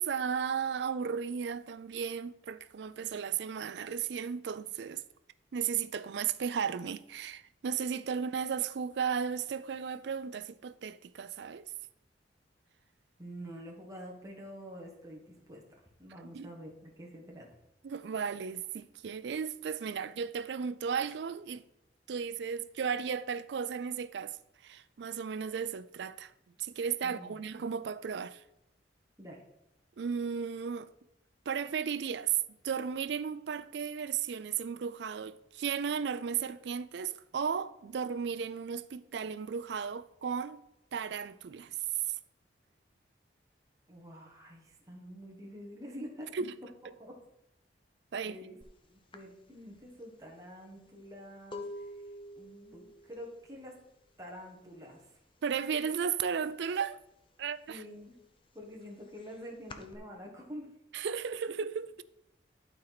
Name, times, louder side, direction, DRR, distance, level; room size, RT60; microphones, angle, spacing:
voice 1, 0.0-5.0 5.5-11.6 16.2-16.5 17.8-21.6 22.1-24.4 24.6-26.3 26.6-28.4 30.0-30.9 31.5-32.3 32.6-40.6 40.9-41.8 46.3-46.5 48.1-48.4 55.4-57.0 57.4-57.8 60.9-62.0, right 7 dB, 70° right, 0.4 m, -35 dB
voice 2, 13.2-17.5 27.0-27.4 29.2-29.4 43.9-46.4 47.0-47.1 48.2-48.6 48.9-52.0 52.3-53.8 54.2-55.2 57.7-58.1 58.5-60.7, equal, 20° right, 1.4 m, -47 dB
sound 1, 48.6-48.8 49.1-54.8 55.1-55.6 55.9-57.0 57.4-60.0, left 1 dB, 30° left, 0.6 m, -48 dB
11.5 x 4.4 x 4.0 m
head